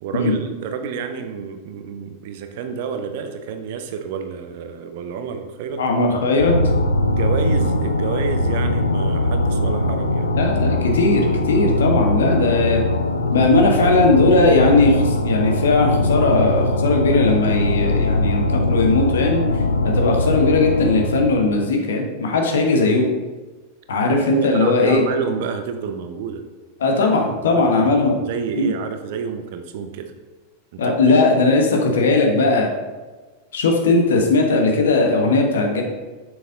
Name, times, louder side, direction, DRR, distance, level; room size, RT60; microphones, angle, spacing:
voice 1, 0.0-5.8 7.1-10.3 24.3-26.4 27.3-30.1 30.7-31.2, right 6 dB, 50° right, 7 dB, 0.7 m, -29 dB
voice 2, 5.8-6.5 10.4-12.8 13.3-19.4 19.8-23.1 23.9-25.0 26.8-28.2 28.6-28.7 30.8-32.7 33.5-35.8, left 3 dB, 65° left, 2 dB, 1.2 m, -18 dB
sound 1, 6.4-21.6, left 1 dB, 80° left, 0.5 m, -21 dB
7.1 x 6.2 x 3.8 m, 1.3 s
figure-of-eight pair, 90°, 0 cm